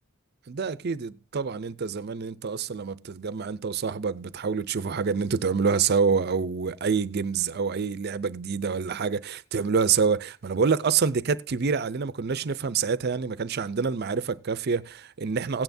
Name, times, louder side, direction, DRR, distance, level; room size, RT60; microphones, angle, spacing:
voice 1, 0.5-15.6, right 5 dB, 50° right, 0.5 m, -27 dB
16.5 x 9.2 x 2.7 m
head